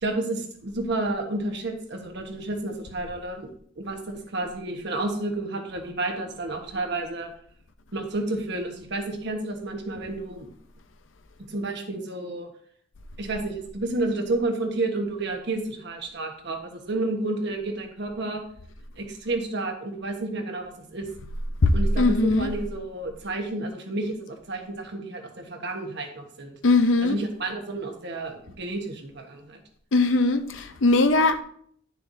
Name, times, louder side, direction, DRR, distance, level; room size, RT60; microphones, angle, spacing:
voice 1, 0.0-7.3 7.9-10.5 11.5-12.5 13.2-18.4 19.0-21.1 21.7-26.5 27.0-29.6, right 2 dB, 60° right, 1.3 m, -31 dB
voice 2, 21.6-22.5 26.6-27.2 29.9-31.4, left 2 dB, 75° left, 0.6 m, -20 dB
10.5 x 6.7 x 2.7 m
head